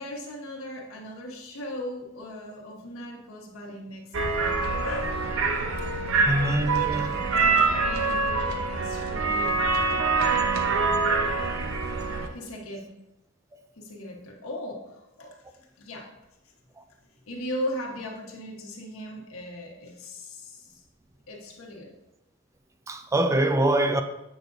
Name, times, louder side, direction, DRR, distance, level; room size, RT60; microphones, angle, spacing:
voice 1, 0.0-4.5 4.8-5.3 5.9-6.3 6.7-9.6 10.3-11.0 12.3-12.9 13.8-15.4 15.8-16.1 17.3-20.8 21.3-21.9, left 1 dB, 90° left, 1.3 m, -38 dB
sound 1, 4.1-12.3, right 3 dB, 85° right, 0.8 m, -25 dB
voice 2, 6.3-7.3 22.9-24.0, right 1 dB, 15° right, 0.3 m, -24 dB
8.2 x 6.0 x 2.6 m
head